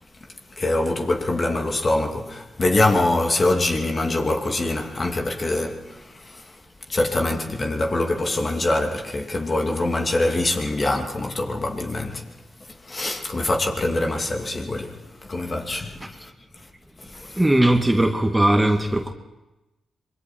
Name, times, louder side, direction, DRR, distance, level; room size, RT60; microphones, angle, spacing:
voice 1, 0.6-6.0 6.9-12.2 12.9-15.0 15.3-16.3 17.3-17.4, left 2 dB, 40° left, 2.9 m, -24 dB
voice 2, 17.4-19.1, right 1 dB, 15° right, 2.1 m, -19 dB
26.5 x 22.0 x 4.6 m
supercardioid pair, 45°, 0 cm